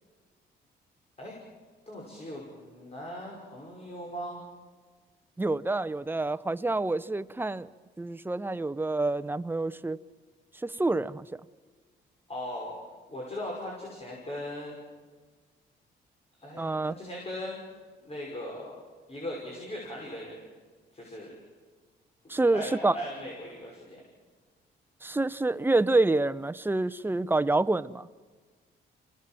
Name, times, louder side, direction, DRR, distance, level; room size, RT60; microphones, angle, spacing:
voice 1, 1.9-4.4 12.3-12.7 13.1-14.8 16.4-17.6 18.0-18.7 19.1-20.4 20.9-21.3 22.2-24.0, left 1 dB, 30° left, -3 dB, 6.1 m, -39 dB
voice 2, 5.4-7.7 8.0-10.0 10.6-11.3 16.6-16.9 22.3-22.9 25.0-28.1, right 2 dB, 10° right, 14 dB, 0.7 m, -27 dB
26.5 x 18.0 x 7.7 m, 1.4 s
cardioid pair, 90°, 20 cm